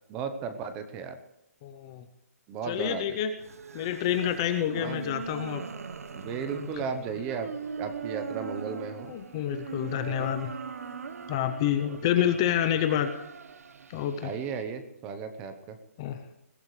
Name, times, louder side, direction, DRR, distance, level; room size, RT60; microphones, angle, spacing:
voice 1, 0.1-1.2 2.5-3.0 4.8-5.0 6.1-7.5 7.8-9.1 10.1-10.3 14.2-15.8, right 6 dB, 10° right, 9 dB, 0.8 m, -35 dB
voice 2, 1.6-2.1 2.6-3.3 3.7-5.6 6.8-6.9 9.1-10.5 11.3-13.1 13.9-14.3 16.0-16.2, left 10 dB, 15° left, 8 dB, 0.6 m, -28 dB
sound 1, 3.4-14.6, right 6 dB, 65° right, 1.1 m, -40 dB
21.5 x 16.0 x 3.2 m, 0.91 s
hypercardioid pair, 175°, 8 cm